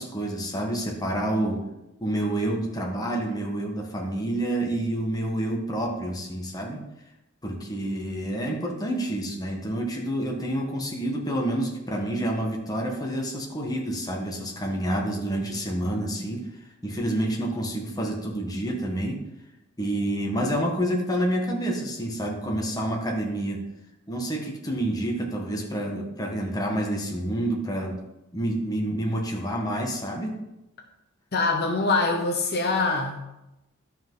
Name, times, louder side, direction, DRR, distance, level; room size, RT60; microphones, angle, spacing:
voice 1, 0.0-1.6 2.0-6.8 7.4-16.5 16.8-19.2 19.8-23.6 24.1-28.0 28.3-30.4, right 1 dB, 15° left, 0 dB, 1.4 m, -28 dB
voice 2, 31.3-33.2, left 3 dB, 50° left, 1 dB, 1.0 m, -24 dB
12.0 x 5.7 x 3.9 m, 0.92 s
head